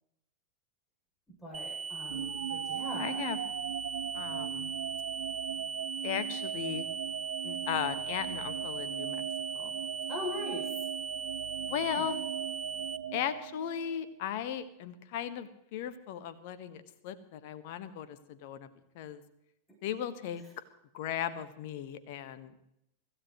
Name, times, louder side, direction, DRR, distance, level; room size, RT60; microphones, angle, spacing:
voice 1, 1.4-3.3 10.1-10.7 11.8-12.1 20.4-20.5, left 1 dB, 5° left, -3 dB, 7.6 m, -41 dB
sound 1, 1.5-13.0, right 5 dB, 15° right, 1.3 m, -39 dB
sound 2, 2.1-14.2, right 10 dB, 60° right, 0.5 m, -39 dB
voice 2, 3.0-3.4 4.1-4.7 6.0-6.8 7.4-9.2 9.5-9.7 11.7-12.2 13.1-18.7 18.9-19.2 19.8-20.4 20.9-22.5, left 10 dB, 50° left, 12 dB, 1.5 m, -37 dB
25.0 x 15.5 x 3.2 m, 0.78 s
figure-of-eight pair, 90°, 0 cm